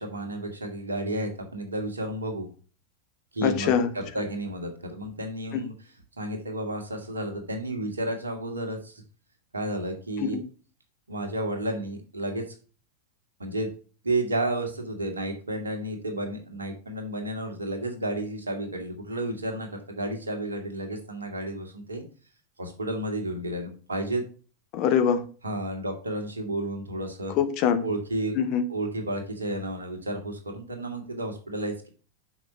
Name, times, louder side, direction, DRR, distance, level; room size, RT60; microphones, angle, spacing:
voice 1, 0.0-2.5 3.3-5.7 6.2-9.0 9.5-10.4 11.1-12.4 13.4-13.7 14.0-22.0 22.6-24.2 25.4-27.3 27.8-28.3 28.7-31.9, right 1 dB, 75° right, 1.7 m, -32 dB
voice 2, 3.4-3.9 5.5-5.6 10.2-10.4 24.7-25.2 27.3-27.8 28.3-28.6, left 8 dB, 40° left, 1.0 m, -23 dB
6.0 x 5.1 x 5.4 m
figure-of-eight pair, 90°, 0 cm